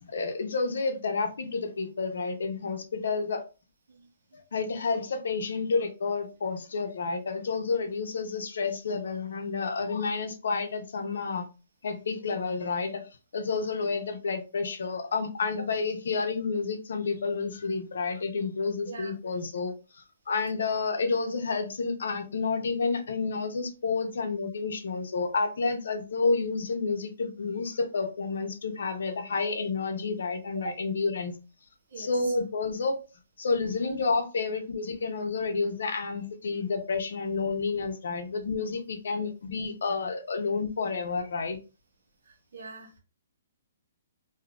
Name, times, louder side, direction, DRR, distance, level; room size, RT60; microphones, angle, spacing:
voice 1, 0.0-3.4 4.3-11.5 11.8-13.1 13.3-31.4 32.0-33.0 33.4-41.6, left 4 dB, 65° left, 0.6 m, -30 dB
voice 2, 31.9-32.4 42.2-43.0, right 3 dB, 70° right, 1.1 m, -42 dB
3.6 x 2.7 x 2.3 m
hypercardioid pair, 180°, 0 cm